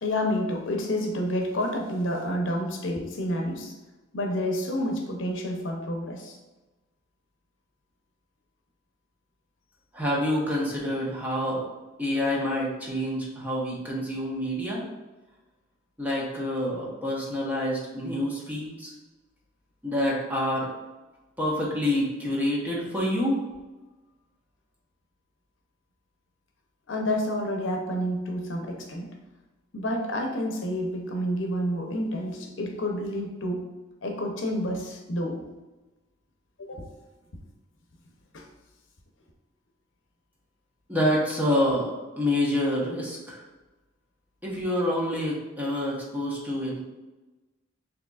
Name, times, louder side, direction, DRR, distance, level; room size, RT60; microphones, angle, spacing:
voice 1, 0.0-3.7 4.1-6.4 26.9-29.1 29.7-33.7 34.0-35.4 36.6-36.9 38.3-38.4, equal, 75° left, 2 dB, 0.7 m, -29 dB
voice 2, 9.9-11.6 12.0-14.9 16.0-18.9 19.8-20.7 21.4-23.4 40.9-43.4 44.4-46.8, left 1 dB, 10° right, -4 dB, 0.9 m, -27 dB
6.6 x 2.8 x 2.4 m, 1.1 s
head